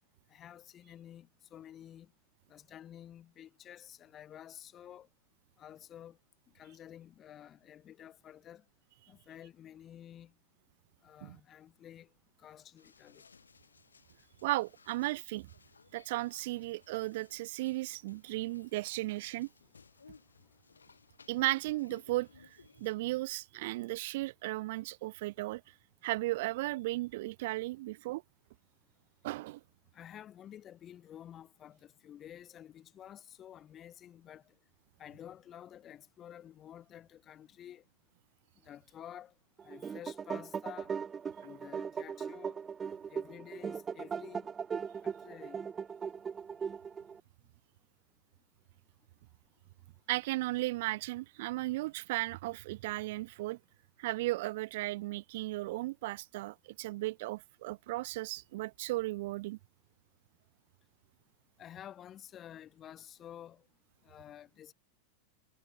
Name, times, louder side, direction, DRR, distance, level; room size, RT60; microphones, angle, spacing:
voice 1, 0.3-2.1 2.5-5.1 5.6-6.2 6.5-8.6 9.1-10.3 11.0-12.1 12.4-13.2 29.9-34.5 35.0-37.8 38.6-39.3 39.6-40.9 41.4-42.6 43.1-44.5 45.0-45.7 61.6-63.6 64.0-64.7, left 10 dB, 30° left, 4.9 m, -51 dB
sound 1, 12.8-23.0, left 5 dB, 75° left, 4.5 m, -60 dB
voice 2, 14.4-15.5 15.9-19.5 21.3-25.6 26.0-28.2 29.2-29.6 50.1-53.6 54.0-59.6, right 19 dB, 50° right, 0.6 m, -35 dB
sound 2, 39.6-47.2, right 6 dB, 20° right, 2.1 m, -39 dB
figure-of-eight pair, 90°, 0 cm